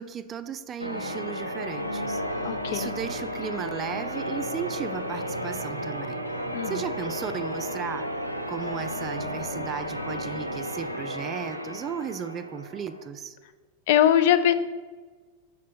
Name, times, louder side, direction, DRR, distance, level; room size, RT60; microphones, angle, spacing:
voice 1, 0.0-2.2 2.7-6.2 6.7-8.1 8.5-13.4, right 7 dB, 25° right, 12 dB, 0.3 m, -35 dB
Church bell, 0.8-13.1, equal, 90° right, 0.4 m, -33 dB
voice 2, 2.4-2.9 6.5-6.7 13.9-14.5, left 10 dB, 50° left, 13 dB, 0.3 m, -21 dB
6.0 x 3.8 x 4.2 m, 1.4 s
figure-of-eight pair, 90°, 0 cm